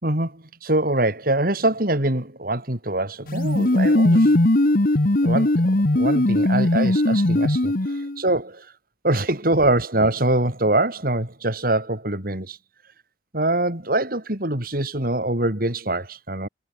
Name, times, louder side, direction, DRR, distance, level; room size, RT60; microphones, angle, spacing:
voice 1, 0.0-4.4 5.2-8.7 9.0-12.6 13.3-16.5, right 2 dB, 55° right, 4.5 m, -24 dB
sound 1, 3.3-8.2, left 1 dB, 55° left, 1.4 m, -19 dB
head